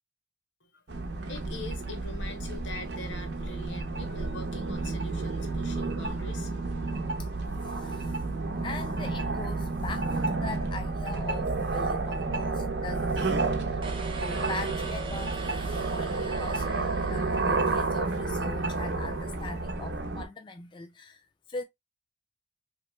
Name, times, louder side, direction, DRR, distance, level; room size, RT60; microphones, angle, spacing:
voice 1, 0.6-6.6, left 2 dB, 85° left, 0.8 m, -43 dB
sound 1, 0.9-20.3, right 3 dB, 70° right, 0.7 m, -31 dB
voice 2, 7.6-8.2 8.6-13.4 13.7-13.8 14.2-21.2 21.5-21.6, left 3 dB, 25° left, 0.3 m, -41 dB
sound 2, 13.8-18.0, right 4 dB, 25° right, 0.5 m, -42 dB
3.0 x 2.0 x 3.1 m
head